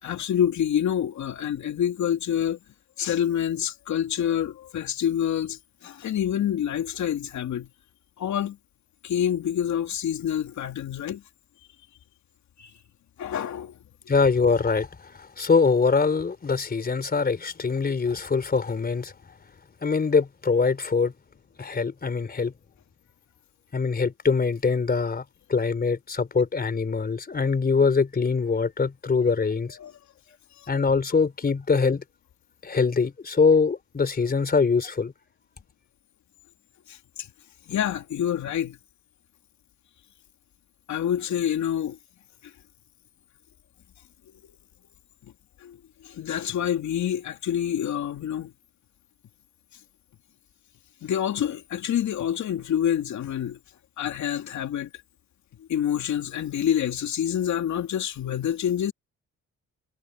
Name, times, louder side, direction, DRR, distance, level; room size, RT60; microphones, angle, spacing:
voice 1, 0.0-2.6 3.0-7.7 8.2-8.6 9.0-11.2 12.6-12.7 13.2-13.8 29.8-29.9 36.9-37.0 37.7-38.8 40.9-42.0 42.4-42.5 45.6-45.8 46.0-48.5 51.0-53.6 54.0-54.9 55.6-58.9, left 9 dB, 70° left, 2.9 m, -27 dB
voice 2, 14.1-19.4 19.8-21.1 21.6-22.5 23.7-25.2 25.5-29.8 30.7-32.0 32.6-35.1, left 4 dB, 30° left, 3.6 m, -23 dB
cardioid pair, 90°, 30 cm